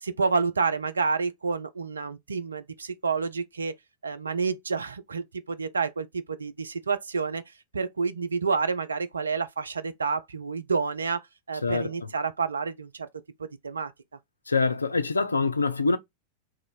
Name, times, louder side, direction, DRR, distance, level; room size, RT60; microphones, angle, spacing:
voice 1, 0.0-3.8 4.0-7.4 7.7-13.1 13.4-13.9, right 4 dB, 75° right, 0.4 m, -29 dB
voice 2, 11.6-11.9 14.5-16.0, left 4 dB, 80° left, 0.4 m, -25 dB
3.0 x 2.5 x 3.8 m
figure-of-eight pair, 90°, 0 cm